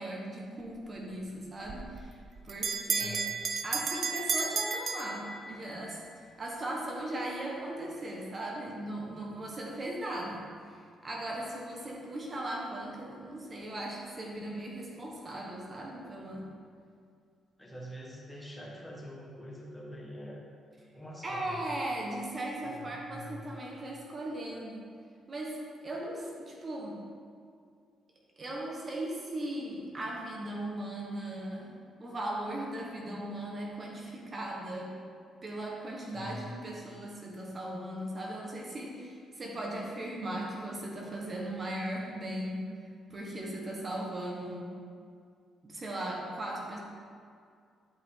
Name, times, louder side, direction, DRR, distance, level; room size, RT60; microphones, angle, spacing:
voice 1, 0.0-2.2 2.4-3.2 3.6-6.0 6.4-10.4 10.7-16.4 21.2-24.9 25.3-25.6 25.8-27.0 28.4-31.7 32.0-35.0 35.4-42.6 43.1-44.7 45.6-46.8, right 1 dB, 35° right, -2 dB, 1.4 m, -38 dB
Bell, 1.7-5.8, right 5 dB, 50° right, 0.6 m, -33 dB
voice 2, 2.9-3.3 17.6-20.4 20.9-21.6 22.6-23.4 36.1-36.5, equal, 10° left, -3 dB, 1.7 m, -45 dB
11.0 x 5.3 x 3.8 m, 2.2 s
cardioid pair, 95°, 0 cm